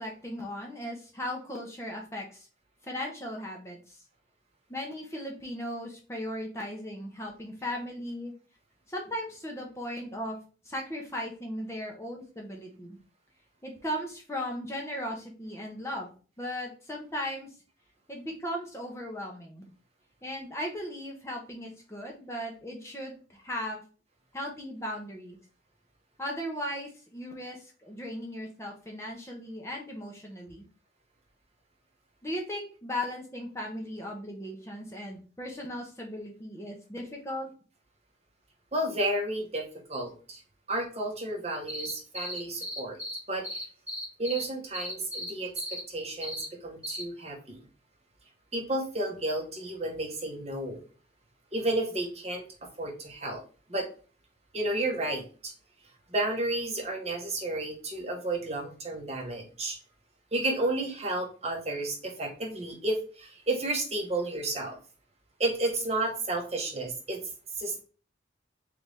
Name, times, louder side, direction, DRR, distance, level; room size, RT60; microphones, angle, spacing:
voice 1, 0.0-2.5 2.8-4.0 4.7-8.3 8.9-10.4 10.6-13.0 13.6-16.1 16.4-17.5 18.1-19.7 20.2-23.8 24.3-25.4 26.2-30.7 32.2-37.5, equal, 15° left, 0 dB, 0.8 m, -37 dB
voice 2, 38.7-40.4 40.7-43.0 43.3-43.6 44.2-47.6 48.5-50.8 51.5-52.5 52.8-53.4 53.7-53.9 54.5-55.5 56.1-59.8 60.3-64.8 65.4-67.2 67.6-67.8, right 2 dB, 35° right, 1 dB, 1.0 m, -32 dB
sound 1, 41.7-43.2 43.4-44.4 44.7-45.3 45.6-45.8 46.2-46.4 46.8-47.0, equal, 5° right, 1.8 m, -36 dB
3.9 x 3.4 x 3.3 m, 0.37 s
head